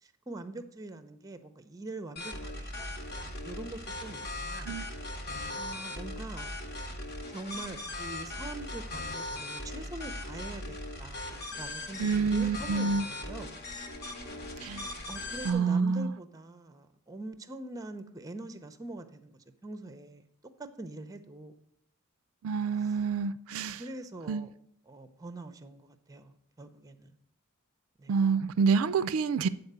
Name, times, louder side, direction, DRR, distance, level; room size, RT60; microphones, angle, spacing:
voice 1, 0.0-2.9 3.2-4.7 5.6-6.5 7.3-10.7 11.0-11.2 11.6-13.5 15.1-20.3 20.6-21.5 22.8-23.0 23.6-24.5 24.9-27.1 28.0-28.1, right 2 dB, 15° right, 0.6 m, -43 dB
sound 1, 2.2-15.5, left 1 dB, 45° left, 1.0 m, -39 dB
voice 2, 12.0-13.1 14.6-14.9 15.5-16.1 22.4-23.8 24.3-24.4 28.1-29.5, right 5 dB, 70° right, 0.4 m, -27 dB
8.4 x 4.2 x 6.7 m
head